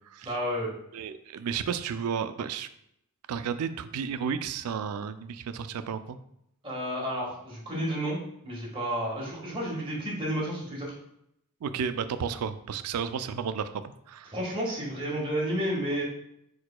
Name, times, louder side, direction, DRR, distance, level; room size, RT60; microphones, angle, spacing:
voice 1, 0.2-0.7 6.6-8.2 8.4-10.9 14.3-16.0, equal, 25° right, -5 dB, 1.5 m, -31 dB
voice 2, 0.9-2.7 3.3-6.2 11.6-14.3, right 7 dB, 85° right, 12 dB, 0.3 m, -32 dB
4.7 x 4.6 x 2.2 m, 0.77 s
head